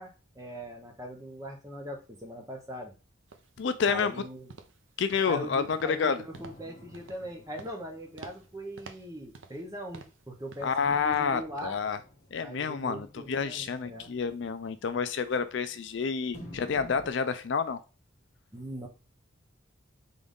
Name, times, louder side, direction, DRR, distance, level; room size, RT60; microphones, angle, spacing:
voice 1, 0.0-2.9 3.8-4.5 5.3-11.8 12.4-14.1 18.5-18.9, equal, 15° right, 0.8 m, -41 dB
sound 1, 3.3-3.5 3.9-4.2 4.5-4.8 5.1-5.4 5.7-6.0 6.3-6.6 6.9-7.3 7.6-7.9 8.2-8.5 8.8-9.7 9.9-10.2 10.5-10.8 11.1-11.2, right 4 dB, 65° right, 0.6 m, -49 dB
voice 2, 3.6-4.1 5.0-6.2 10.6-12.0 12.3-17.8, left 5 dB, 60° left, 0.4 m, -29 dB
sound 2, 6.3-10.0 10.9-15.9 16.3-17.1, left 1 dB, 35° left, 1.3 m, -52 dB
3.9 x 3.8 x 3.6 m
head